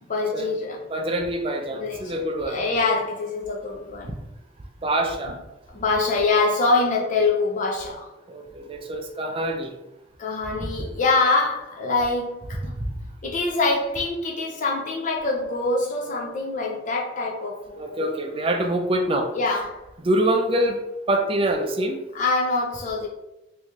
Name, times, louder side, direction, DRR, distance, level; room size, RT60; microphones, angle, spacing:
voice 1, 0.0-0.9 1.7-4.1 5.3-5.4 5.7-8.1 10.2-12.8 13.2-18.1 19.3-19.8 22.1-23.1, left 3 dB, 45° left, 0.5 m, -25 dB
voice 2, 0.9-2.6 4.1-4.2 4.8-5.4 8.3-9.8 10.6-10.7 12.8-12.9 17.8-19.3 20.0-20.8 21.1-22.0, right 1 dB, 30° right, 0.4 m, -25 dB
3.1 x 2.6 x 3.5 m
head